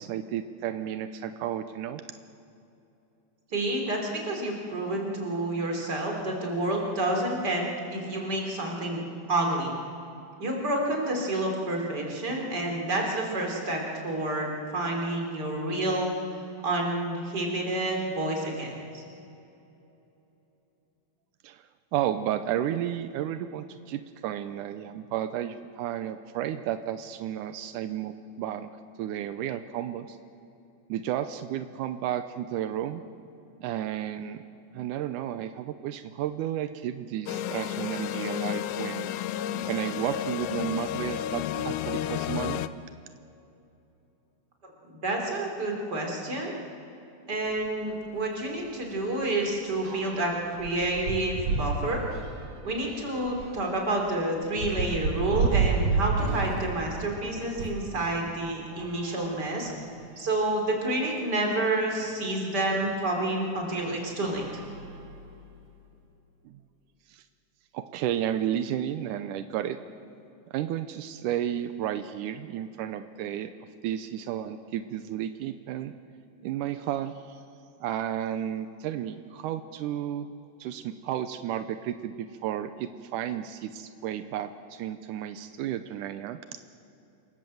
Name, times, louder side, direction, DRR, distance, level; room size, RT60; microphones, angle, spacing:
voice 1, 0.0-2.0 21.4-28.7 29.0-30.2 30.9-33.0 33.6-34.4 34.7-39.1 39.7-42.6 66.5-66.6 67.1-67.2 67.7-69.8 70.5-73.5 73.8-75.9 76.4-77.4 77.8-80.3 80.6-86.4, right 11 dB, 85° right, 10 dB, 2.3 m, -32 dB
voice 2, 3.5-9.0 9.3-9.7 10.4-16.1 16.6-19.0 45.0-46.5 47.3-52.0 52.6-59.7 60.2-64.4, right 1 dB, 30° right, 1 dB, 4.2 m, -29 dB
sound 1, 37.3-42.7, left 11 dB, 80° left, 2.1 m, -32 dB
sound 2, 47.5-47.7 48.0-48.2 48.5-57.9 58.7-60.0 60.7-60.8 61.0-61.1 62.8-62.9 63.6-63.9 64.2-65.5, right 4 dB, 60° right, 2.6 m, -32 dB
27.5 x 19.5 x 7.9 m, 2.8 s
omnidirectional pair, 3.6 m